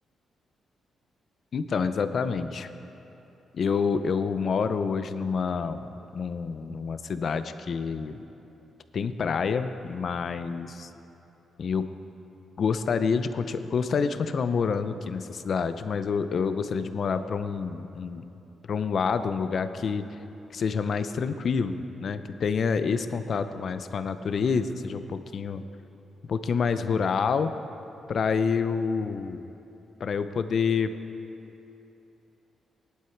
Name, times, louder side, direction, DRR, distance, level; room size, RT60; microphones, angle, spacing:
voice 1, 1.5-2.7 3.5-5.9 6.1-8.2 8.9-10.9 11.6-11.9 12.6-18.2 18.7-20.0 20.5-25.6 26.3-27.5 28.1-29.5 30.0-30.9, left 5 dB, 50° left, 10 dB, 0.6 m, -27 dB
18.0 x 11.5 x 4.6 m, 3.0 s
cardioid pair, 130°, 0 cm